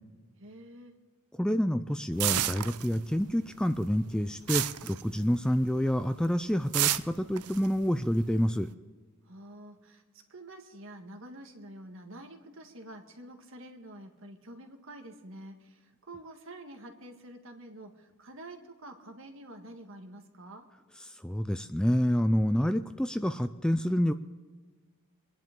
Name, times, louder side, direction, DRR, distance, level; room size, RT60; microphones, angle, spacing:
voice 1, 0.4-0.9 9.2-10.0 10.3-20.6, right 1 dB, 60° right, 4 dB, 1.7 m, -48 dB
voice 2, 1.4-8.7 21.1-24.1, equal, 5° left, 9 dB, 0.3 m, -28 dB
sound 1, 2.2-3.3 3.6-5.6 6.0-6.3 6.7-8.6, right 13 dB, 90° right, 0.6 m, -31 dB
26.0 x 10.5 x 3.7 m, 1.4 s
head